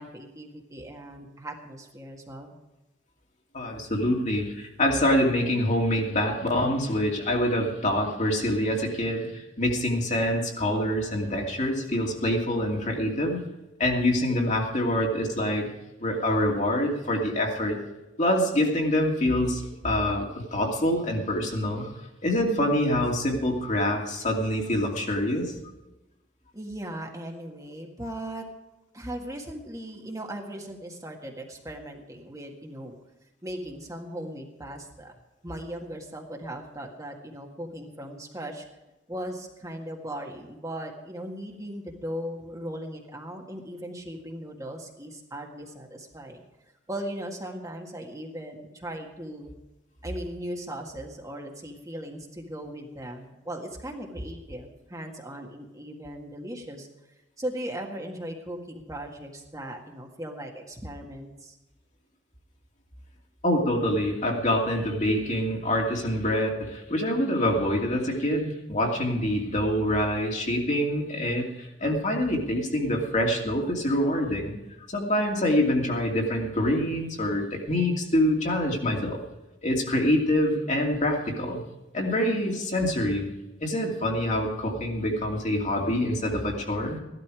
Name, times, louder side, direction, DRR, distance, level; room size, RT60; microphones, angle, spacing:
voice 1, 0.0-2.6 26.5-28.5 28.9-32.9 33.4-35.1 35.4-38.7 39.1-46.4 46.9-49.6 50.0-56.9 57.4-61.6, right 1 dB, 20° right, 1 dB, 1.8 m, -38 dB
voice 2, 3.5-13.4 13.8-15.7 16.0-17.8 18.2-21.9 22.2-25.5 63.4-74.5 74.9-79.2 79.6-81.6 81.9-83.3 83.6-87.0, left 1 dB, 40° left, 0 dB, 2.7 m, -25 dB
15.5 x 12.5 x 4.9 m, 1.0 s
head